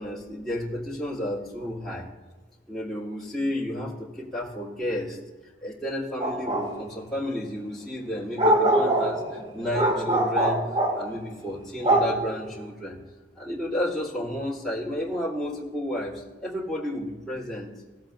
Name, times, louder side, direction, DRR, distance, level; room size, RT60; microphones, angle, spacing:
voice 1, 0.0-2.1 2.7-5.2 5.6-13.0 13.3-17.8, left 1 dB, ahead, -10 dB, 2.9 m, -32 dB
sound 1, 6.2-6.7 8.4-11.0 11.8-12.3, right 1 dB, 30° right, 2.6 m, -22 dB
18.5 x 8.0 x 2.6 m, 1.4 s
head